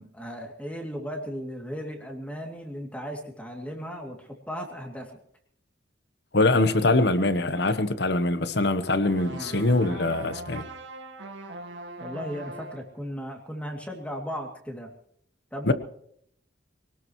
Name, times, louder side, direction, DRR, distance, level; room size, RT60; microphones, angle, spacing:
voice 1, 0.0-5.2 9.3-9.6 12.0-14.9 15.5-15.7, equal, 5° left, 2.6 m, -36 dB
voice 2, 6.3-10.6 15.6-15.7, left 2 dB, 60° left, 1.1 m, -23 dB
sound 1, 9.0-12.9, right 2 dB, 80° right, 1.9 m, -41 dB
24.0 x 18.5 x 3.1 m
head